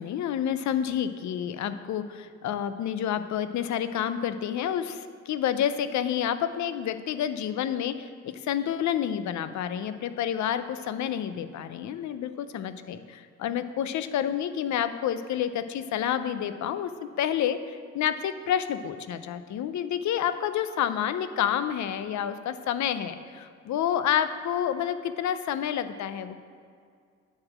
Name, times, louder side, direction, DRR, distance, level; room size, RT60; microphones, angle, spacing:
voice 1, 0.0-26.4, left 9 dB, 70° left, 11 dB, 0.7 m, -29 dB
9.5 x 4.9 x 7.3 m, 2.2 s
cardioid pair, 90°, 30 cm